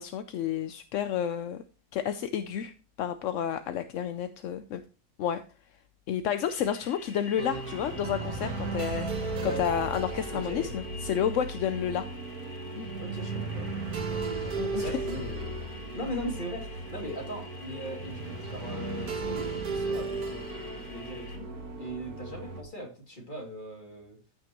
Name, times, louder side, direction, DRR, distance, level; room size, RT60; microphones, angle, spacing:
voice 1, 0.0-1.6 1.9-4.8 5.2-5.4 6.1-12.1 12.8-12.9 14.4-15.0, left 9 dB, 65° left, 10 dB, 0.8 m, -31 dB
sound 1, 6.4-21.4, left 3 dB, 90° left, 2.8 m, -50 dB
sound 2, 7.4-22.6, right 3 dB, 70° right, 1.7 m, -35 dB
voice 2, 10.3-10.8 13.0-13.7 14.0-14.4 14.7-15.7 15.9-21.5 21.8-24.2, equal, 30° left, 1 dB, 2.7 m, -39 dB
14.0 x 6.1 x 3.0 m, 0.33 s
omnidirectional pair, 1.7 m